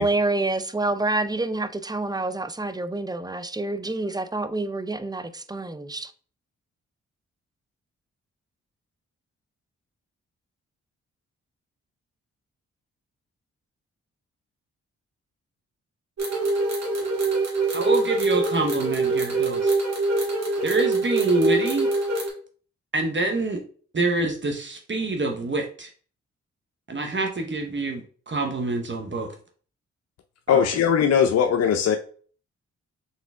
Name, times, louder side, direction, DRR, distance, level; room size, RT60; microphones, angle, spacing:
voice 1, 0.0-6.1, right 2 dB, 15° right, 0.5 m, -27 dB
sound 1, 16.2-22.3, right 3 dB, 60° right, 2.0 m, -24 dB
voice 2, 17.7-19.8 20.6-21.9 22.9-23.6 23.9-25.9 26.9-29.3 30.5-30.6, right 2 dB, 40° right, 1.0 m, -26 dB
voice 3, 30.5-32.0, left 8 dB, 55° left, 0.5 m, -19 dB
4.0 x 3.8 x 3.5 m
supercardioid pair, 45°, 30 cm